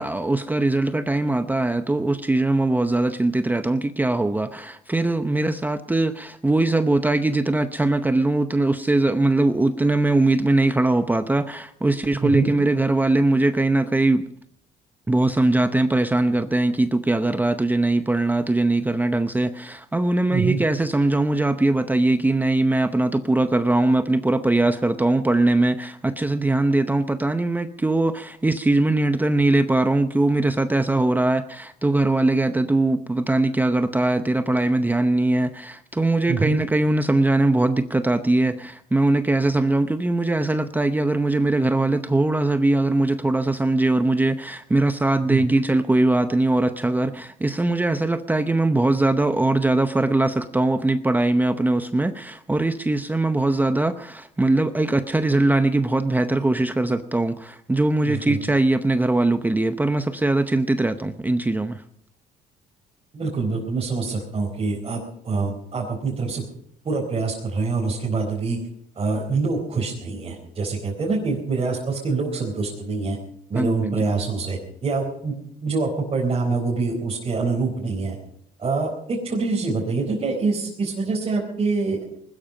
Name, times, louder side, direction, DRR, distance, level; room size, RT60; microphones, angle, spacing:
voice 1, 0.0-14.2 15.1-61.8 73.5-74.0, right 2 dB, 10° right, 0.7 m, -21 dB
voice 2, 12.2-12.5 20.3-20.6 36.3-36.6 45.2-45.6 58.0-58.4 63.1-66.4 66.8-68.6 69.0-73.2 73.5-75.3 75.6-78.2 78.6-82.0, right 4 dB, 35° right, 4.2 m, -25 dB
20.5 x 13.0 x 5.2 m
cardioid pair, 110°, 17 cm